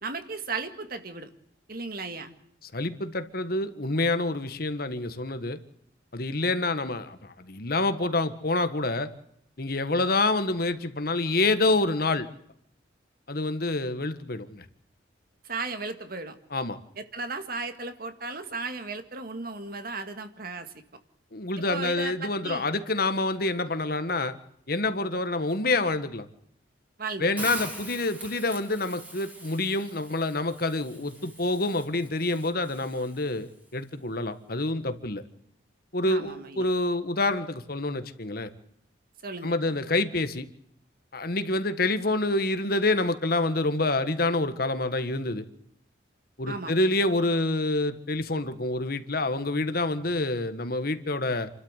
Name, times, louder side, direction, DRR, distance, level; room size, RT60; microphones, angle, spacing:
voice 1, 0.0-1.3 1.7-2.3 15.4-16.4 17.0-20.7 21.7-22.7 27.0-27.5 36.1-36.6 39.2-39.8 46.5-46.7, right 3 dB, 50° right, 8 dB, 2.1 m, -35 dB
voice 2, 2.7-5.6 6.1-9.1 9.6-12.3 13.3-14.6 16.5-16.8 21.3-24.3 24.7-26.3 27.2-35.2 35.9-38.5 39.4-40.5 41.1-45.4 46.4-51.5, left 2 dB, 50° left, 10 dB, 1.6 m, -27 dB
Hiss, 27.4-33.4, right 1 dB, 10° right, 3.1 m, -43 dB
28.5 x 13.0 x 8.1 m, 0.73 s
head